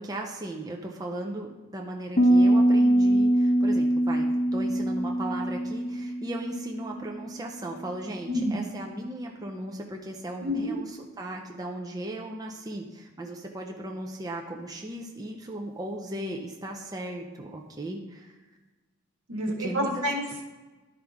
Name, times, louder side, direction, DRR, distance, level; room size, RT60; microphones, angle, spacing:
voice 1, 0.0-18.4 19.6-19.9, right 1 dB, 15° right, 1 dB, 0.6 m, -37 dB
Piano, 2.2-7.8, right 1 dB, 35° left, 0.9 m, -23 dB
voice 2, 10.4-10.8 19.3-20.4, equal, 75° right, 1 dB, 1.5 m, -28 dB
11.5 x 5.0 x 3.5 m, 1.2 s
head